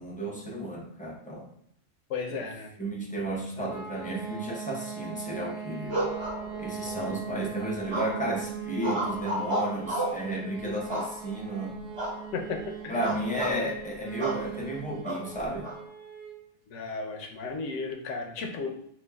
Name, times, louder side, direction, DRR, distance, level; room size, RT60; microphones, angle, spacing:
voice 1, 0.0-1.5 2.4-2.5 2.8-6.0 6.6-11.8 12.9-15.7, right 1 dB, 10° left, -2 dB, 0.6 m, -33 dB
voice 2, 2.1-2.7 6.9-7.2 12.3-13.0 13.5-13.6 16.7-18.7, left 4 dB, 75° left, 3 dB, 1.0 m, -34 dB
sound 1, 3.6-16.4, right 7 dB, 50° right, 0.9 m, -40 dB
sound 2, 5.9-6.9 7.9-8.4 8.8-10.3 10.9-11.5 12.0-12.2 12.5-12.7 13.0-13.6 14.2-14.5 15.0-15.8, right 1 dB, 25° right, 1.0 m, -32 dB
6.6 x 2.4 x 2.2 m, 0.72 s
omnidirectional pair, 1.3 m